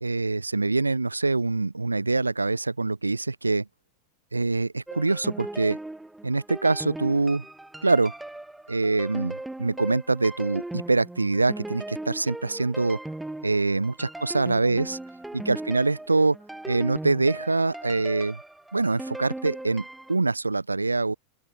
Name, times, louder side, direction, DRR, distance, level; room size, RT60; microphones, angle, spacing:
voice 1, 0.0-3.7 4.3-5.8 6.2-7.5 7.8-8.1 8.7-13.0 13.4-15.0 15.3-16.4 16.7-18.4 18.7-21.1, right 3 dB, 80° right, 0.6 m, -24 dB
sound 1, 4.9-20.2, right 2 dB, 5° right, 0.8 m, -38 dB
open air
figure-of-eight pair, 90°, 0 cm